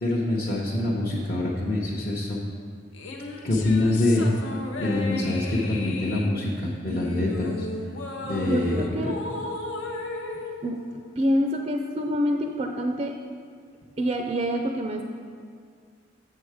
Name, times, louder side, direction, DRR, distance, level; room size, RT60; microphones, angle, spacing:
voice 1, 0.0-2.4 3.4-4.2 4.8-7.7 8.2-9.1, left 2 dB, 50° left, -6 dB, 0.8 m, -25 dB
sound 1, 2.9-11.5, left 3 dB, 85° left, 0.8 m, -35 dB
voice 2, 8.5-9.2 10.6-13.2 14.0-15.0, equal, 30° right, 4 dB, 0.4 m, -26 dB
7.7 x 6.6 x 4.7 m, 2.1 s
head